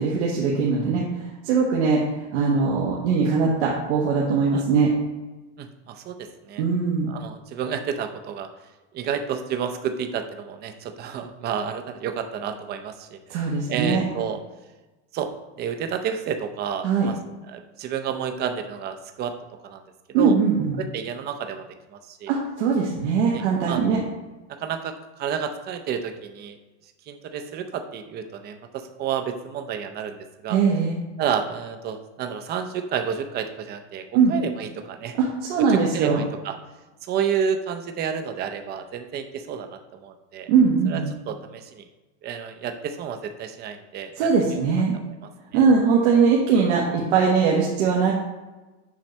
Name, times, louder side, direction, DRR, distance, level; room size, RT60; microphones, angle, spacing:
voice 1, 0.0-2.0 2.3-4.9 6.6-7.1 13.3-14.0 16.8-17.1 20.1-20.8 22.3-24.0 30.5-31.0 34.1-34.4 35.1-36.2 40.5-41.1 44.2-44.9 45.5-48.1, right 5 dB, 85° right, -3 dB, 1.3 m, -21 dB
voice 2, 5.6-6.6 7.1-8.5 8.9-13.2 13.7-14.4 15.1-15.3 15.6-17.2 17.5-19.3 19.6-19.8 20.2-20.4 20.8-22.3 23.3-23.8 24.5-26.6 27.1-30.6 31.2-35.2 35.7-36.6 37.0-40.5 40.9-41.8 42.2-44.6 45.5-45.6, right 7 dB, 30° right, 7 dB, 0.6 m, -30 dB
7.4 x 3.1 x 5.3 m, 1.1 s
supercardioid pair, 150°, 34 cm